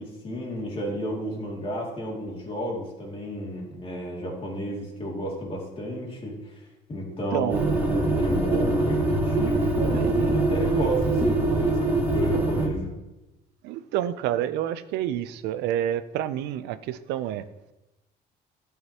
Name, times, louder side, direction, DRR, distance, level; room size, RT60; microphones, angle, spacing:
voice 1, 0.0-6.5 6.9-13.0, equal, 35° left, -2 dB, 2.4 m, -32 dB
voice 2, 7.3-7.6 8.5-8.7 9.8-10.4 13.6-17.4, right 11 dB, 90° right, 14 dB, 0.5 m, -29 dB
sound 1, 7.5-12.7, right 2 dB, 10° right, 1.5 m, -23 dB
11.0 x 5.7 x 2.9 m, 1.0 s
cardioid pair, 110°, 17 cm